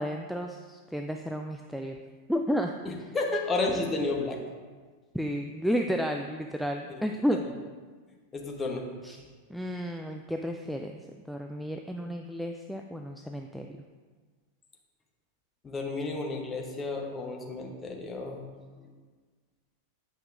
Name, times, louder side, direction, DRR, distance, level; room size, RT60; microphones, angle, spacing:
voice 1, 0.0-2.0 2.3-2.7 5.1-7.4 9.0-9.2 9.5-11.0 11.3-13.7, equal, ahead, 3 dB, 0.3 m, -32 dB
voice 2, 2.8-4.4 6.9-7.0 8.3-8.9 15.6-18.4, left 3 dB, 20° left, 1 dB, 0.9 m, -32 dB
8.7 x 5.3 x 2.5 m, 1.5 s
figure-of-eight pair, 90°, 0 cm